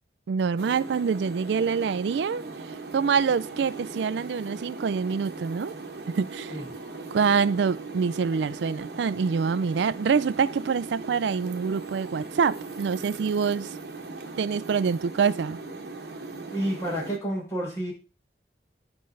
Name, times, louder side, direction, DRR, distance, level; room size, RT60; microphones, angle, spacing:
voice 1, 0.3-2.4 2.9-5.7 6.1-6.6 7.1-13.7 14.4-15.6, right 6 dB, 85° right, 0.4 m, -25 dB
sound 1, 0.6-17.2, right 3 dB, 65° right, 1.3 m, -39 dB
voice 2, 16.4-17.9, right 1 dB, 15° left, 4.8 m, -30 dB
11.5 x 5.4 x 3.8 m
head